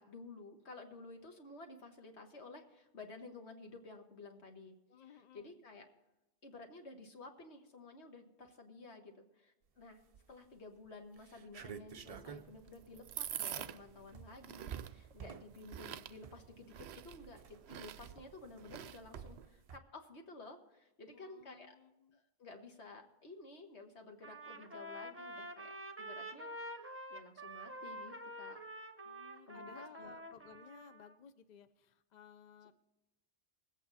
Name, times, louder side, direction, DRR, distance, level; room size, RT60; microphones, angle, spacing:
voice 1, 0.0-5.9 6.4-10.0 10.3-21.8 22.1-26.6 27.1-28.6 29.5-30.2, left 3 dB, 70° left, 4 dB, 1.9 m, -53 dB
voice 2, 4.9-5.6 21.1-22.2 29.0-32.7, left 7 dB, 50° left, 11 dB, 0.6 m, -58 dB
sound 1, 10.0-10.5 10.9-11.0 11.2-19.8, right 7 dB, 45° right, 0.5 m, -52 dB
sound 2, 12.0-19.5, right 10 dB, 70° right, 0.8 m, -47 dB
Trumpet, 24.2-31.1, right 1 dB, 15° right, 0.8 m, -47 dB
20.0 x 8.3 x 4.1 m, 0.99 s
omnidirectional pair, 1.2 m